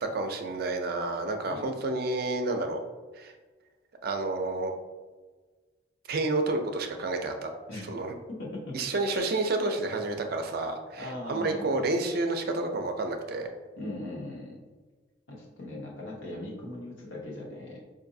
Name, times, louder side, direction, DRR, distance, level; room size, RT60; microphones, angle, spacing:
voice 1, 0.0-2.8 3.2-3.3 4.0-4.7 6.1-7.5 7.9-8.1 8.7-13.5, right 2 dB, 50° right, 5 dB, 0.4 m, -30 dB
voice 2, 8.3-8.8 11.0-11.7 13.8-14.6 15.3-17.8, left 1 dB, 85° left, -3 dB, 1.0 m, -39 dB
4.7 x 2.6 x 2.6 m, 1.3 s
head